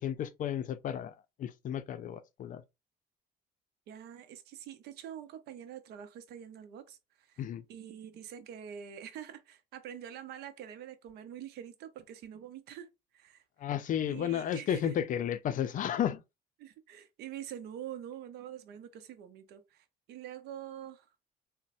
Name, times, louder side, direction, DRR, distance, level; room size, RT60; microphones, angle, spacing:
voice 1, 0.0-2.6 7.4-7.6 13.6-16.2, left 10 dB, 55° left, 0.4 m, -33 dB
voice 2, 3.9-7.4 7.7-13.4 14.0-15.0 16.6-21.1, right 10 dB, 80° right, 0.6 m, -45 dB
4.0 x 2.1 x 2.6 m
cardioid pair, 105°, 16 cm